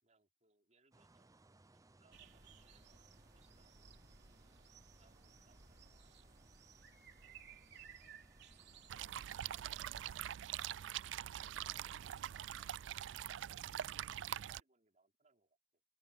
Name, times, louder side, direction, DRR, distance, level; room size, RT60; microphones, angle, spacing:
voice 1, 0.0-1.7 2.0-4.3 4.9-6.5 8.0-8.4 12.3-12.9 14.1-15.8, right 3 dB, 40° right, 5.2 m, -75 dB
sound 1, 0.9-9.8, right 2 dB, 20° right, 0.6 m, -67 dB
sound 2, 2.1-8.9, right 6 dB, 65° right, 3.2 m, -60 dB
sound 3, 8.9-14.6, right 11 dB, 85° right, 0.3 m, -44 dB
open air
head